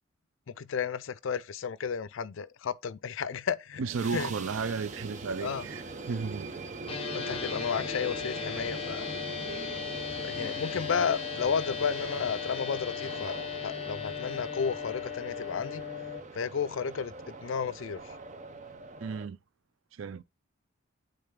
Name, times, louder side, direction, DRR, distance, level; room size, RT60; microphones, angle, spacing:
voice 1, 0.5-3.8 4.1-4.3 5.4-5.7 7.1-9.1 10.0-15.8 16.3-18.2, left 6 dB, 70° left, 0.4 m, -33 dB
sound 1, 3.7-19.3, right 3 dB, 35° right, 0.7 m, -42 dB
voice 2, 3.8-6.5 19.0-19.4 19.9-20.2, right 5 dB, 75° right, 0.4 m, -34 dB
sound 2, 6.9-16.2, left 7 dB, 30° left, 0.9 m, -37 dB
8.8 x 3.9 x 3.6 m
head